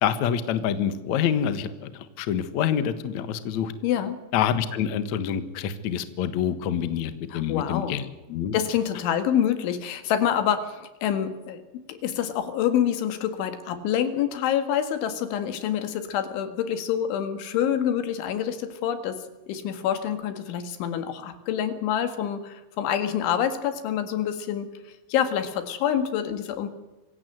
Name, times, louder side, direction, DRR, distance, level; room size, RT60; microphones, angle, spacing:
voice 1, 0.0-3.7 4.3-8.5, left 9 dB, 65° left, 11 dB, 1.9 m, -27 dB
voice 2, 3.8-4.2 7.3-8.0 8.5-11.6 11.9-24.7 25.1-26.7, left 9 dB, 80° left, 10 dB, 4.2 m, -27 dB
25.5 x 16.5 x 7.9 m, 1.1 s
omnidirectional pair, 5.4 m